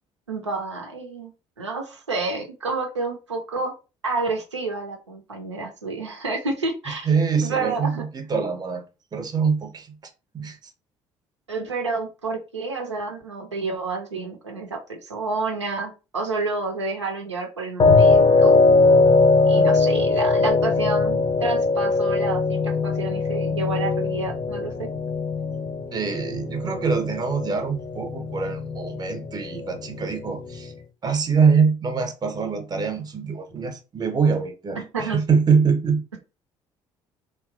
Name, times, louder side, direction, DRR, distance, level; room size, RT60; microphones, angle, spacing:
voice 1, 0.3-1.3 1.6-3.7 4.0-7.1 7.4-8.0 11.5-18.6 19.4-24.9 34.8-35.2, right 3 dB, 90° right, 0.5 m, -29 dB
voice 2, 7.1-8.8 9.1-9.9 10.3-10.6 25.9-30.7 31.0-36.0, right 5 dB, 30° right, 0.7 m, -24 dB
sound 1, 17.8-30.8, left 3 dB, 30° left, 0.5 m, -21 dB
2.9 x 2.3 x 2.4 m
figure-of-eight pair, 50°, 14 cm